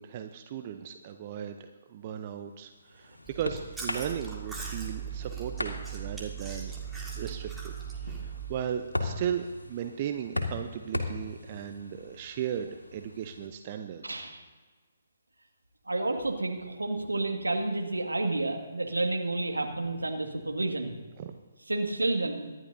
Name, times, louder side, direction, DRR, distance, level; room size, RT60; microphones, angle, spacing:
voice 1, 0.0-6.7 7.2-7.7 8.2-14.3 21.2-21.4, right 9 dB, 35° right, 7 dB, 0.7 m, -36 dB
sound 1, 2.4-13.5, left 2 dB, 80° left, 2.0 m, -39 dB
Chewing mastication, 3.3-8.6, right 7 dB, 5° right, 2.0 m, -39 dB
voice 2, 14.0-14.4 15.9-21.0 21.7-22.5, right 2 dB, 80° right, 3 dB, 2.0 m, -30 dB
25.0 x 11.0 x 2.7 m, 1.4 s
figure-of-eight pair, 135°, 0 cm